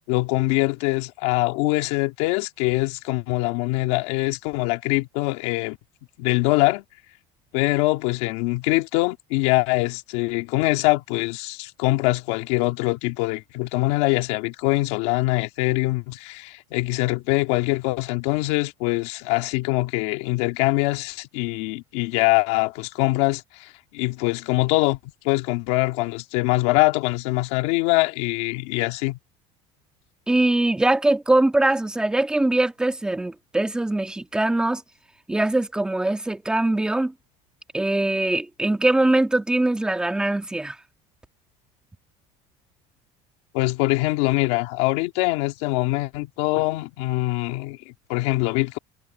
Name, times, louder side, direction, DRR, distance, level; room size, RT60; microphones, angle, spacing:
voice 1, 0.1-5.8 6.2-6.8 7.5-25.0 25.2-29.2 43.5-48.8, left 21 dB, 80° left, 2.3 m, -23 dB
voice 2, 30.3-34.8 35.3-37.1 37.7-40.7, right 2 dB, 5° right, 1.7 m, -22 dB
cardioid pair, 165°, 15 cm